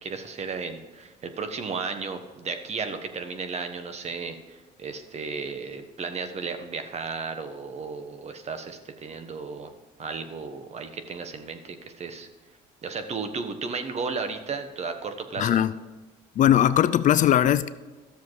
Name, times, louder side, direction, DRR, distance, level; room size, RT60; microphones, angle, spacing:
voice 1, 0.0-9.7 10.0-12.3 12.8-15.6, right 4 dB, 40° right, 8 dB, 1.2 m, -34 dB
voice 2, 15.4-15.7 16.4-17.7, left 11 dB, 50° left, 14 dB, 0.4 m, -19 dB
13.0 x 7.0 x 4.8 m, 1.2 s
cardioid pair, 110°, 17 cm